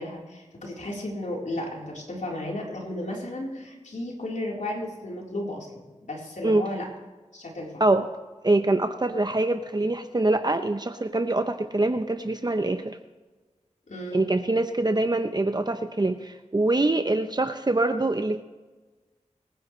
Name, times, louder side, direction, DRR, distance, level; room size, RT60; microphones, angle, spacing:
voice 1, 0.0-6.9 7.3-7.8 13.9-14.2, left 1 dB, 85° left, -3 dB, 4.1 m, -34 dB
voice 2, 8.4-13.0 14.1-18.4, right 2 dB, 35° right, 7 dB, 0.8 m, -24 dB
25.0 x 10.5 x 3.3 m, 1.3 s
wide cardioid pair, 50°, 13 cm